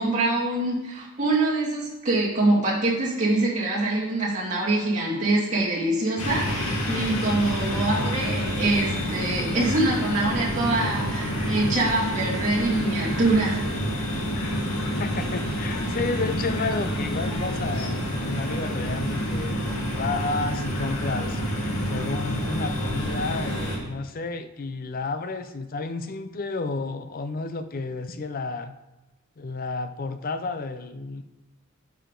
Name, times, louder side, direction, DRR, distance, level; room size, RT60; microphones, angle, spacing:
voice 1, 0.0-13.6, right 2 dB, 35° right, -6 dB, 2.4 m, -24 dB
sound 1, 6.2-23.8, equal, 90° left, 1.8 m, -28 dB
voice 2, 15.0-21.4 21.9-28.7 29.4-31.2, left 3 dB, 40° left, 10 dB, 0.5 m, -31 dB
11.0 x 4.9 x 3.8 m, 1.0 s
head